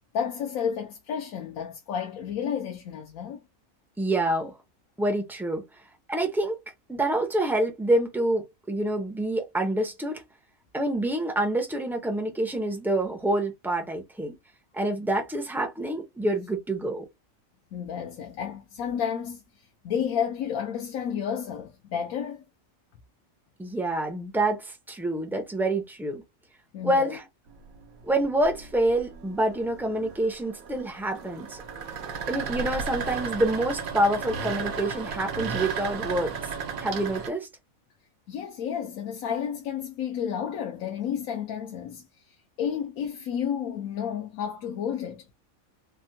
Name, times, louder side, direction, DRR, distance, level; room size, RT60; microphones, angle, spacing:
voice 1, 0.1-3.4 17.7-22.4 26.7-27.2 38.3-45.2, left 8 dB, 85° left, 1.1 m, -31 dB
voice 2, 4.0-4.5 5.0-5.6 6.1-6.6 6.9-10.2 10.7-14.3 14.7-17.1 23.6-26.2 26.8-27.2 28.0-31.6 32.3-36.4 36.8-37.5, right 1 dB, 5° right, 0.3 m, -27 dB
sound 1, 27.5-37.3, right 5 dB, 80° right, 1.2 m, -35 dB
3.4 x 2.1 x 2.6 m
omnidirectional pair, 1.4 m